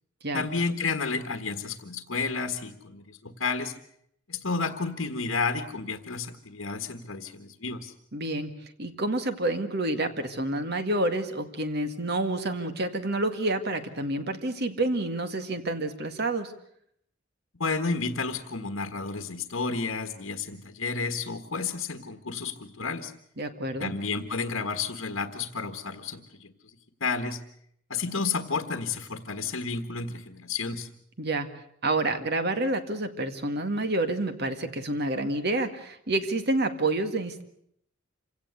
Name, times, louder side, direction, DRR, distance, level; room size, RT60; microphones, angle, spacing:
voice 1, 0.3-3.7 4.3-7.9 17.6-23.1 23.8-26.5 27.0-27.4 27.9-30.9, left 4 dB, 75° left, 6 dB, 1.6 m, -31 dB
voice 2, 8.1-16.5 23.4-23.9 31.2-31.5 31.8-37.4, right 2 dB, 55° right, 9 dB, 2.0 m, -28 dB
26.5 x 17.5 x 8.2 m, 0.70 s
head